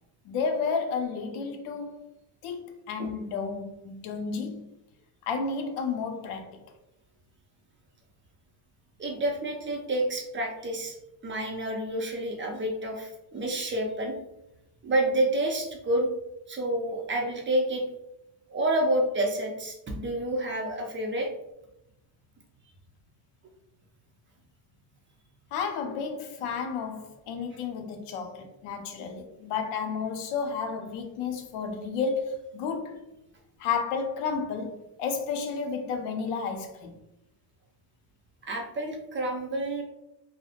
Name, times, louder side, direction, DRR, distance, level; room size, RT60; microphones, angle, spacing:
voice 1, 0.2-2.1 2.4-4.7 5.2-6.6 25.5-33.0 33.6-37.0, left 5 dB, 85° left, 0.6 m, -32 dB
voice 2, 9.0-11.0 11.2-14.1 14.8-16.1 16.5-17.8 18.5-21.3 38.4-39.8, right 1 dB, 25° right, 0.5 m, -29 dB
2.8 x 2.1 x 2.4 m
cardioid pair, 105°, 49 cm